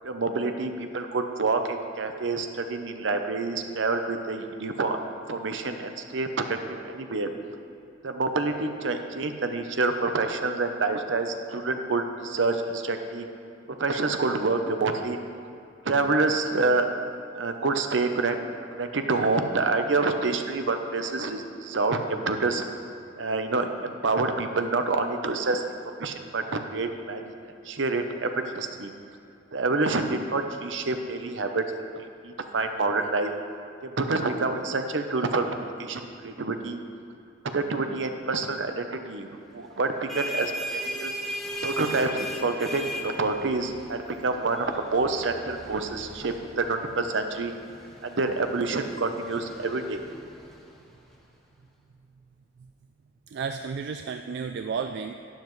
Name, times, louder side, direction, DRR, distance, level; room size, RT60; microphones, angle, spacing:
voice 1, 0.0-5.0 5.3-7.3 8.0-13.3 13.8-15.2 15.8-16.9 17.3-18.4 18.7-22.6 23.2-25.6 26.0-27.3 27.6-28.3 28.5-28.9 29.5-31.6 32.0-33.3 33.8-36.8 37.4-41.1 41.6-47.5 48.0-50.0, right 3 dB, 80° right, 6 dB, 0.8 m, -27 dB
sound 1, 39.8-51.2, equal, ahead, 1.0 m, -38 dB
voice 2, 53.3-55.1, right 5 dB, 60° right, 6 dB, 0.3 m, -32 dB
12.0 x 9.8 x 3.2 m, 2.6 s
head